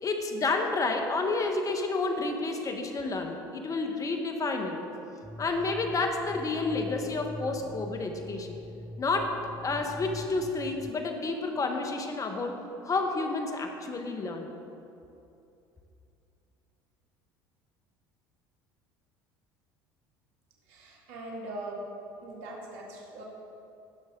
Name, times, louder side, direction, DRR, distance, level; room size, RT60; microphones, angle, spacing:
voice 1, 0.0-4.8 5.4-8.6 9.0-9.3 9.6-14.5, left 3 dB, 30° left, 4 dB, 1.4 m, -30 dB
sound 1, 5.2-10.9, left 1 dB, ahead, 0.5 m, -43 dB
voice 2, 20.7-21.8 22.2-23.2, right 2 dB, 70° right, -3 dB, 2.2 m, -41 dB
17.0 x 6.1 x 3.9 m, 2.7 s
hypercardioid pair, 80°, 11 cm